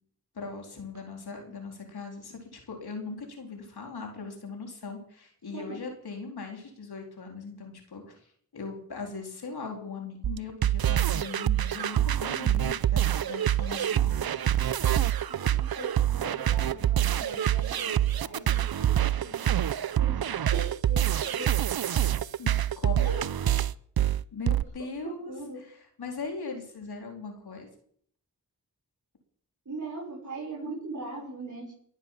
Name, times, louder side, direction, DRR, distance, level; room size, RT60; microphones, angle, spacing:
voice 1, 0.3-8.1 8.5-14.4 22.4-23.2 24.3-25.3 26.0-27.7, left 4 dB, 90° left, 2 dB, 4.0 m, -39 dB
sound 1, 10.2-24.6, right 11 dB, 70° right, 0.7 m, -26 dB
voice 2, 15.3-19.5 20.0-21.6 25.0-25.6 29.7-31.8, right 2 dB, 50° right, -4 dB, 5.9 m, -41 dB
22.0 x 8.5 x 7.5 m, 0.62 s
cardioid pair, 40°, 37 cm